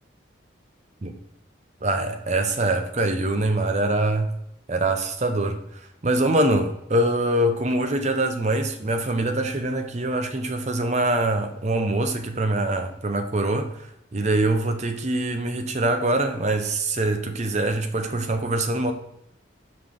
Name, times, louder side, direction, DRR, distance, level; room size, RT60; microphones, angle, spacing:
voice 1, 1.8-4.3 4.7-5.6 6.0-18.9, right 2 dB, 35° right, 6 dB, 0.6 m, -24 dB
5.7 x 4.9 x 3.6 m, 0.81 s
head